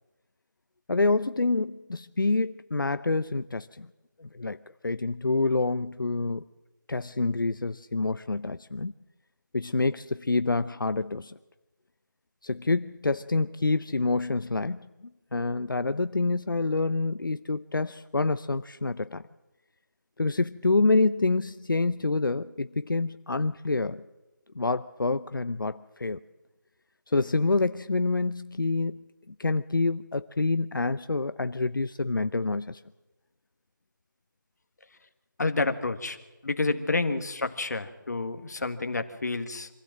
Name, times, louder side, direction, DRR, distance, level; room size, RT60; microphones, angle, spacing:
voice 1, 0.9-3.9 4.2-4.6 4.8-6.4 6.9-8.9 9.5-11.3 12.4-14.9 15.3-19.2 20.2-24.0 24.5-26.2 27.1-29.0 29.3-32.8, left 3 dB, 85° left, 13 dB, 0.6 m, -27 dB
voice 2, 35.4-36.2 36.4-39.7, left 3 dB, 55° left, 8 dB, 1.7 m, -29 dB
25.0 x 16.0 x 7.6 m, 1.1 s
figure-of-eight pair, 165°, 11 cm